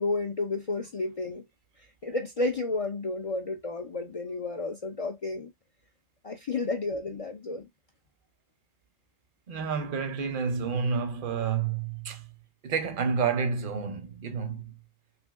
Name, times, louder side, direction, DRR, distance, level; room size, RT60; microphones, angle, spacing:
voice 1, 0.0-1.4 2.0-5.5 6.2-7.7, left 3 dB, 45° left, 0.4 m, -31 dB
voice 2, 9.5-12.3 12.6-14.8, right 5 dB, 55° right, 0.8 m, -29 dB
3.3 x 2.6 x 2.3 m
omnidirectional pair, 1.1 m